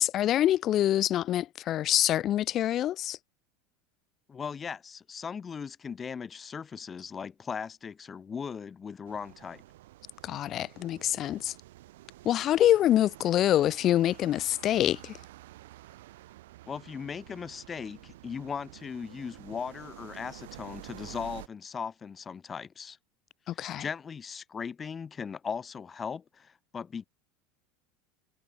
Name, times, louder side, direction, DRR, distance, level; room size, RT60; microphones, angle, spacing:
voice 1, 0.0-3.2 10.2-11.5 12.2-15.2 23.5-23.9, left 12 dB, 45° left, 2.4 m, -25 dB
voice 2, 4.3-9.6 16.7-23.0 23.5-27.1, left 6 dB, 25° left, 4.1 m, -38 dB
sound 1, 9.1-21.5, right 16 dB, 80° right, 7.5 m, -50 dB
supercardioid pair, 100°, 0 cm